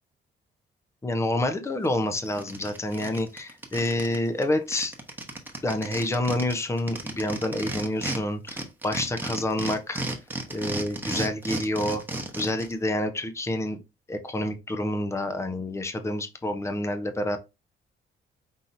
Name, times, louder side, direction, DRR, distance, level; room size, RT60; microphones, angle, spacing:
voice 1, 1.0-4.9 5.6-10.0 10.5-12.0 12.4-13.8 14.1-17.4, left 1 dB, 15° left, 0.7 m, -28 dB
sound 1, 1.8-1.9 2.3-4.2 4.4-4.5 4.7-8.2 8.5-12.7, right 2 dB, 10° right, 1.0 m, -33 dB
5.5 x 2.9 x 2.6 m
cardioid pair, 90°, 20 cm